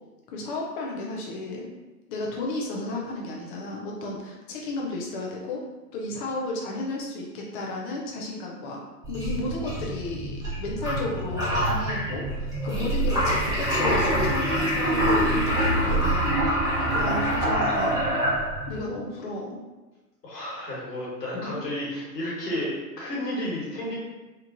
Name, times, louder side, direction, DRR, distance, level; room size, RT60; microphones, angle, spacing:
voice 1, 0.3-1.7 2.1-5.6 5.9-8.8 9.1-16.4 16.8-18.0 18.7-19.6 21.3-21.6, left 2 dB, 35° left, -2 dB, 0.4 m, -33 dB
sound 1, 9.0-18.8, right 1 dB, 10° right, 0.7 m, -25 dB
voice 2, 20.2-24.0, left 1 dB, 75° left, -5 dB, 1.5 m, -32 dB
2.9 x 2.4 x 2.5 m, 1.2 s
hypercardioid pair, 105°, 48 cm